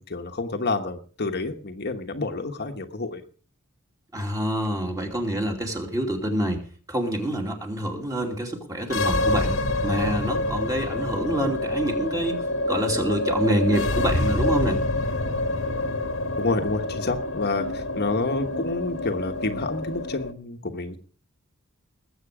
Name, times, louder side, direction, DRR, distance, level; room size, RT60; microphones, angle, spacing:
voice 1, 0.0-3.2 16.4-21.0, left 3 dB, 50° left, 5 dB, 1.3 m, -29 dB
voice 2, 4.1-6.6 6.9-14.8, right 1 dB, 15° right, 2 dB, 2.6 m, -27 dB
sound 1, 8.8-20.3, left 2 dB, 65° left, 1.5 m, -27 dB
20.0 x 8.0 x 4.9 m, 0.42 s
head